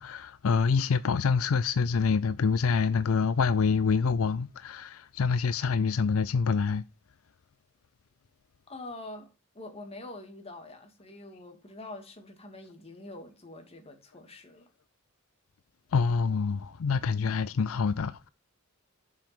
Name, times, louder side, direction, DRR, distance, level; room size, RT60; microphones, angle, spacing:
voice 1, 0.0-6.8 15.9-18.3, left 5 dB, 80° left, 0.5 m, -26 dB
voice 2, 8.7-14.7, left 2 dB, 30° left, 2.3 m, -45 dB
7.3 x 5.6 x 6.0 m
head